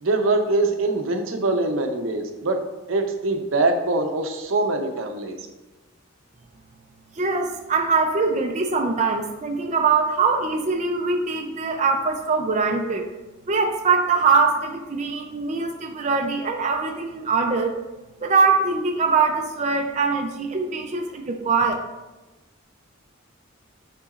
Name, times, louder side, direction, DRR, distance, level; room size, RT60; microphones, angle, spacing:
voice 1, 0.0-2.6 2.9-5.4, right 2 dB, 75° right, 5 dB, 0.7 m, -23 dB
voice 2, 7.2-13.1 13.5-17.8 18.2-21.7, right 4 dB, 35° right, 2 dB, 0.5 m, -22 dB
10.0 x 3.9 x 2.5 m, 1.1 s
head